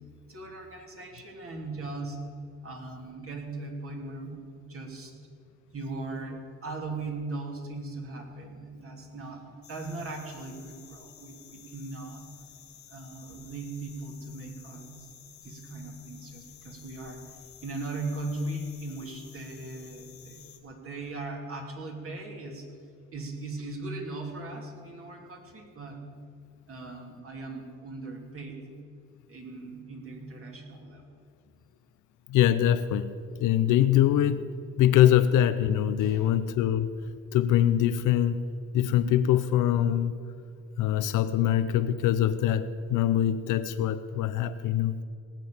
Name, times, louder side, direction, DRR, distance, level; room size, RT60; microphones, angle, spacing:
voice 1, 0.3-2.3 2.6-5.1 5.7-12.3 12.9-15.1 15.4-17.2 17.6-22.7 23.1-26.1 26.7-28.6 29.3-31.2 36.0-36.3, right 2 dB, 45° right, 1 dB, 3.0 m, -39 dB
sound 1, 9.6-20.6, left 9 dB, 65° left, 1.6 m, -52 dB
voice 2, 32.3-33.1 33.4-34.4 34.8-36.9 37.3-38.4 38.7-40.2 40.8-45.0, left 11 dB, 85° left, 12 dB, 0.6 m, -23 dB
18.0 x 7.6 x 7.2 m, 2.4 s
cardioid pair, 90°, 30 cm